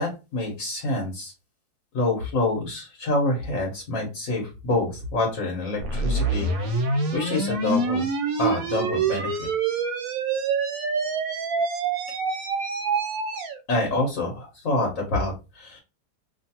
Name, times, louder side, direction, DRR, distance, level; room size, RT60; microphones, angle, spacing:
voice 1, 0.0-1.3 1.9-6.7 7.1-8.0 8.4-9.5 13.7-15.8, left 2 dB, 55° left, -1 dB, 1.2 m, -27 dB
sound 1, 5.8-13.6, right 4 dB, 70° right, 0.9 m, -26 dB
2.8 x 2.4 x 2.8 m, 0.28 s
omnidirectional pair, 1.7 m